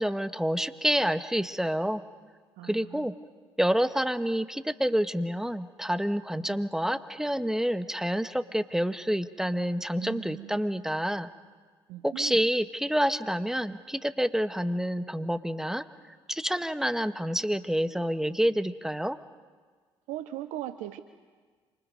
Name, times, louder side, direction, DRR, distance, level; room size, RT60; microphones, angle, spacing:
voice 1, 0.0-2.0 2.6-3.1 3.6-11.3 12.0-15.8 16.3-19.2, equal, 5° right, 10 dB, 1.5 m, -28 dB
voice 2, 2.6-3.1 6.5-6.6 10.0-10.6 11.9-12.4 20.1-21.0, right 14 dB, 70° right, 11 dB, 0.9 m, -39 dB
27.0 x 25.5 x 5.4 m, 1.5 s
hypercardioid pair, 45°, 13 cm